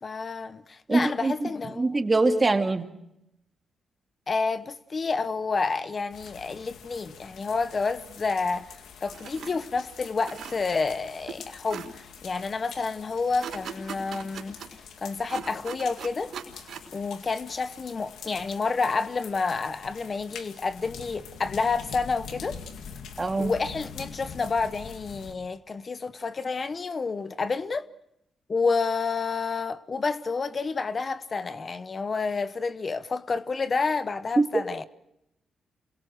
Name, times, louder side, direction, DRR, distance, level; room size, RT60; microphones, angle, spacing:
voice 1, 0.0-2.0 4.3-8.7 9.0-14.6 15.0-16.3 16.9-22.6 23.4-27.9 28.5-34.8, left 4 dB, 45° left, 1.0 m, -29 dB
voice 2, 0.9-1.5 1.8-2.9 23.2-23.5 34.4-34.5, right 3 dB, 30° right, 2.3 m, -23 dB
sound 1, 6.1-25.3, left 6 dB, 80° left, 2.2 m, -45 dB
sound 2, 9.1-9.5 10.0-10.9 11.3-11.4 11.7-11.9 13.4-14.7 15.3-16.9, right 8 dB, 75° right, 4.4 m, -39 dB
28.0 x 23.0 x 6.4 m
cardioid pair, 65°, 0 cm